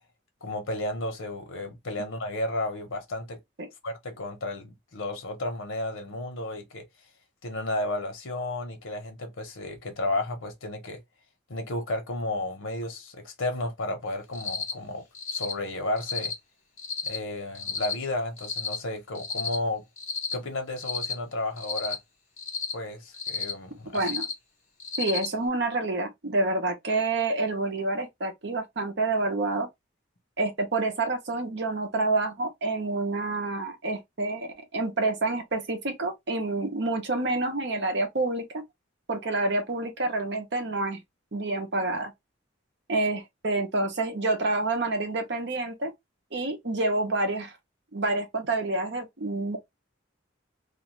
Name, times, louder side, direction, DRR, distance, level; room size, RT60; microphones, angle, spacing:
voice 1, 0.4-3.4 3.8-6.9 7.4-11.0 11.5-15.0 15.3-16.3 17.0-19.8 20.3-22.0 22.7-24.1, left 2 dB, 90° left, 0.9 m, -32 dB
Cricket, 14.3-14.7 15.1-15.5 16.0-16.3 16.8-17.2 17.5-17.9 18.4-18.8 19.1-19.6 20.0-20.3 20.8-21.1 21.6-21.9 22.4-22.7 23.1-23.5 23.9-24.3 24.8-25.3, left 5 dB, 40° left, 1.1 m, -32 dB
voice 2, 23.9-24.2 25.0-29.7 30.4-38.6 39.1-41.0 41.3-42.1 42.9-45.9 46.3-47.5 47.9-49.6, right 2 dB, 60° right, 0.8 m, -28 dB
2.5 x 2.4 x 3.1 m
head